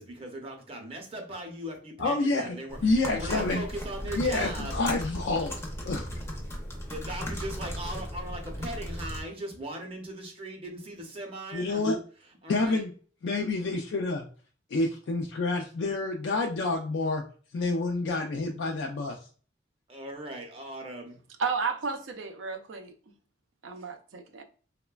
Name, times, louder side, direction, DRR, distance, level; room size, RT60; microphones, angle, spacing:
voice 1, 0.0-4.8 6.8-11.8 12.4-12.8 19.9-21.2, right 1 dB, 30° right, 0.6 m, -39 dB
voice 2, 2.0-2.6 2.8-3.6 4.1-5.6 5.8-6.1 11.5-12.0 12.5-12.9 13.2-14.2 14.7-17.2 17.5-19.2, left 2 dB, 70° left, 0.3 m, -28 dB
sound 1, 2.7-9.2, equal, 15° left, 0.5 m, -36 dB
voice 3, 21.4-23.1 23.6-24.4, right 5 dB, 85° right, 0.5 m, -33 dB
3.1 x 2.1 x 2.2 m
head